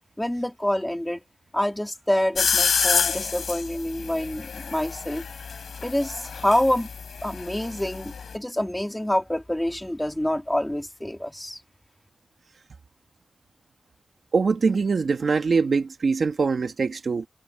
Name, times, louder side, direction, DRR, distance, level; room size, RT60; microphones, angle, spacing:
voice 1, 0.2-1.2 1.5-5.2 5.8-6.9 7.2-11.6, left 1 dB, 10° left, 3.0 m, -26 dB
sound 1, 2.4-8.4, left 6 dB, 80° left, 5.6 m, -28 dB
voice 2, 14.3-17.3, right 4 dB, 65° right, 1.8 m, -23 dB
wide cardioid pair, 85°, 0 cm